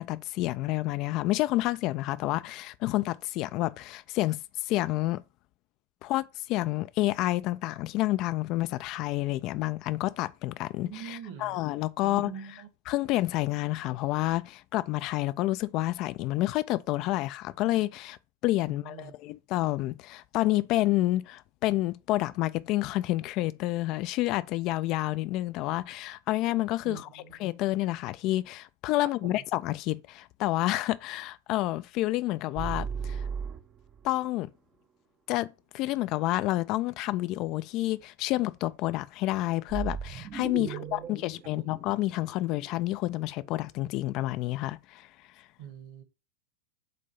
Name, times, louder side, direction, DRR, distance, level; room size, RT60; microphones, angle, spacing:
voice 1, 0.0-5.2 6.0-12.3 12.9-18.2 18.4-27.1 27.4-33.3 34.0-34.5 35.3-45.1, left 17 dB, 40° left, 0.3 m, -29 dB
voice 2, 10.8-11.6 12.0-12.7 18.7-19.1 26.8-27.4 29.0-29.4 40.6-41.7 45.6-46.0, right 8 dB, 50° right, 1.3 m, -44 dB
sound 1, 32.6-34.1 39.7-42.8, right 6 dB, 25° right, 0.5 m, -36 dB
7.6 x 2.7 x 5.4 m
figure-of-eight pair, 90°, 0 cm